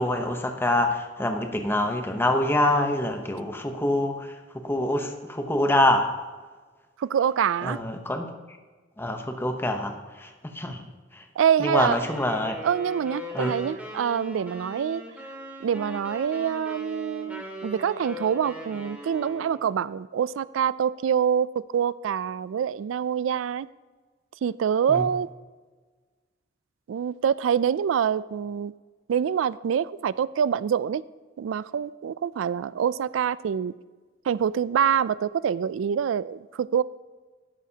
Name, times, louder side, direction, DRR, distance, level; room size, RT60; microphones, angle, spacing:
voice 1, 0.0-6.1 7.6-8.3 9.0-10.8 11.1-11.2 11.6-12.5 13.3-13.5 24.9-25.1, left 1 dB, 10° left, 5 dB, 0.8 m, -25 dB
voice 2, 7.0-7.8 11.4-12.0 12.6-15.0 15.6-23.7 24.4-25.3 26.9-28.7 29.1-31.0 31.4-33.7 34.3-36.8, right 8 dB, 85° right, 19 dB, 0.3 m, -25 dB
sound 1, 11.8-19.7, equal, 10° right, 2.0 m, -40 dB
12.5 x 11.0 x 2.9 m, 1.4 s
head